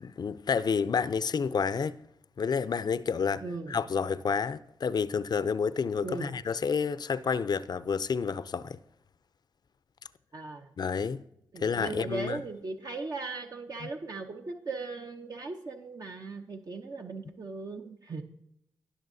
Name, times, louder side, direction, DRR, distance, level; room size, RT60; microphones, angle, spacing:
voice 1, 0.0-2.0 2.4-8.8 10.8-11.2 11.6-12.4 13.8-13.9, left 6 dB, 55° left, 0.5 m, -29 dB
voice 2, 3.4-3.8 6.0-6.3 10.3-10.7 11.5-18.2, right 3 dB, 50° right, 0.8 m, -38 dB
18.0 x 6.3 x 2.7 m
supercardioid pair, 40°, 8 cm